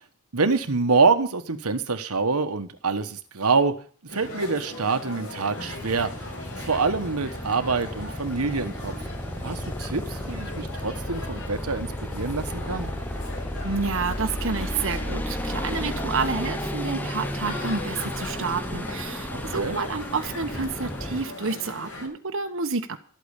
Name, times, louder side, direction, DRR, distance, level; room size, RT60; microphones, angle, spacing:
voice 1, 0.3-3.7 4.1-6.1 6.6-8.9 9.4-12.9 19.3-19.8, right 4 dB, 90° right, 9 dB, 1.3 m, -25 dB
sound 1, 4.1-22.1, left 2 dB, 70° left, 7.1 m, -39 dB
sound 2, 5.5-21.3, equal, 10° left, 1.0 m, -33 dB
voice 2, 13.6-23.0, right 4 dB, 60° right, 6 dB, 1.1 m, -29 dB
13.0 x 8.8 x 8.2 m, 0.42 s
head